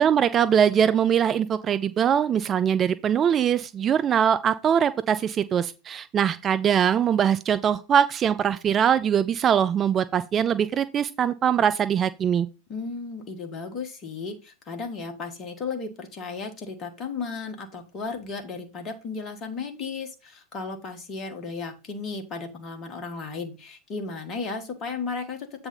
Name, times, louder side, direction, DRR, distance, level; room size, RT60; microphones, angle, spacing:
voice 1, 0.0-12.5, right 8 dB, 25° right, 0.3 m, -22 dB
voice 2, 12.7-25.5, left 4 dB, 30° left, 1.5 m, -34 dB
8.0 x 3.4 x 5.3 m
figure-of-eight pair, 90°, 0 cm